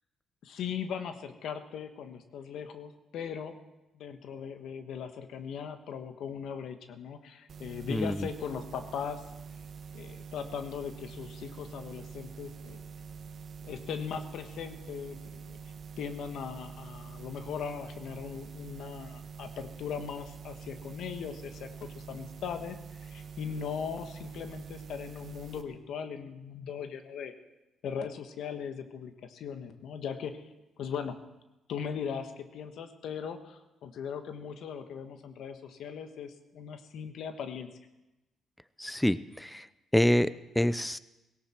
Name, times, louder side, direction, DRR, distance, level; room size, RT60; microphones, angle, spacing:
voice 1, 0.4-3.6 3.9-9.2 9.9-12.9 13.6-15.6 16.0-27.3 27.8-30.4 30.8-31.2 31.7-37.7, left 7 dB, 75° left, 8 dB, 1.4 m, -39 dB
sound 1, 7.5-25.6, right 6 dB, 55° right, 1.5 m, -45 dB
voice 2, 7.9-8.3 38.8-39.7 39.9-41.0, left 1 dB, 5° left, 15 dB, 0.6 m, -27 dB
17.5 x 17.0 x 4.5 m, 1.0 s
cardioid pair, 90°, 0 cm